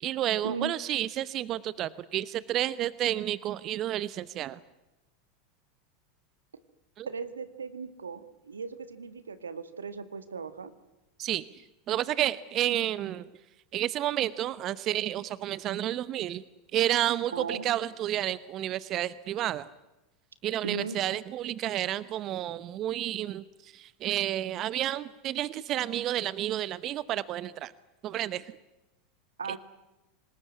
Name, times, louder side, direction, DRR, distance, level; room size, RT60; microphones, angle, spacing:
voice 1, 0.0-4.6 7.0-7.1 11.2-13.3 13.7-16.4 16.7-19.7 20.4-27.7 28.0-28.5, right 13 dB, 45° right, 18 dB, 0.9 m, -31 dB
voice 2, 7.1-10.7 17.3-17.7 20.6-21.0 29.4-29.6, right 5 dB, 90° right, 13 dB, 1.7 m, -37 dB
26.0 x 20.0 x 9.6 m, 1.0 s
hypercardioid pair, 90°, 0 cm